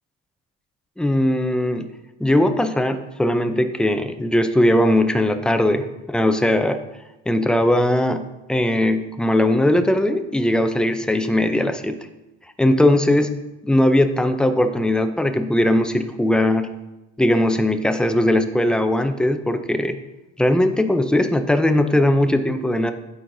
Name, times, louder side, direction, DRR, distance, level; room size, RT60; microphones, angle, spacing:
voice 1, 1.0-1.9 2.2-6.8 7.3-8.2 8.5-12.0 12.6-13.3 13.6-16.7 17.2-20.0 20.4-22.9, left 1 dB, 5° left, 7 dB, 0.4 m, -19 dB
12.5 x 4.5 x 2.6 m, 1.0 s
cardioid pair, 125°, 34 cm